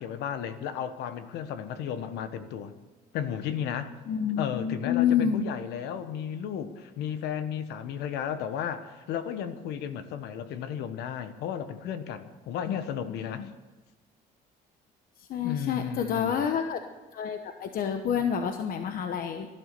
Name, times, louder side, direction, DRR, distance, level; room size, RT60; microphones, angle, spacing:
voice 1, 0.0-2.7 3.1-3.9 4.4-13.5 15.4-16.5, left 8 dB, 85° left, 11 dB, 1.3 m, -34 dB
voice 2, 4.1-5.4 12.7-12.8 13.3-13.5 15.3-16.8 17.1-19.5, left 8 dB, 60° left, 7 dB, 1.1 m, -28 dB
17.0 x 12.0 x 6.8 m, 1.3 s
cardioid pair, 110°, 17 cm